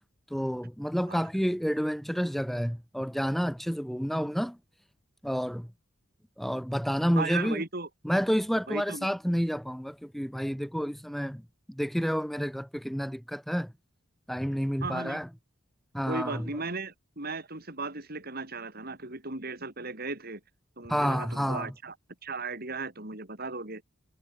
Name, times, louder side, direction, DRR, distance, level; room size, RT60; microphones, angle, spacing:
voice 1, 0.3-4.6 5.2-5.7 6.4-7.6 8.0-11.4 11.7-13.7 14.3-15.3 15.9-16.5 20.9-21.7, equal, ahead, 5.3 m, -29 dB
voice 2, 7.2-7.9 8.7-9.1 14.8-15.2 16.1-20.4 20.8-21.9 22.2-23.8, right 3 dB, 50° right, 5.3 m, -36 dB
head